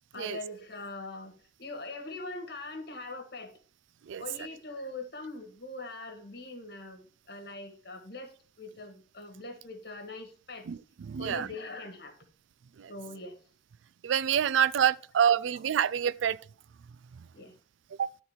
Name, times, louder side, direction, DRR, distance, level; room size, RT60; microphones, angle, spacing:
voice 1, 0.1-3.6 4.2-10.7 11.2-12.1 12.9-13.4 17.3-17.5, left 2 dB, 55° left, 1.7 m, -42 dB
voice 2, 10.7-11.5 12.8-12.9 14.0-16.4 18.0-18.1, right 8 dB, 85° right, 0.4 m, -27 dB
11.0 x 4.0 x 5.6 m
head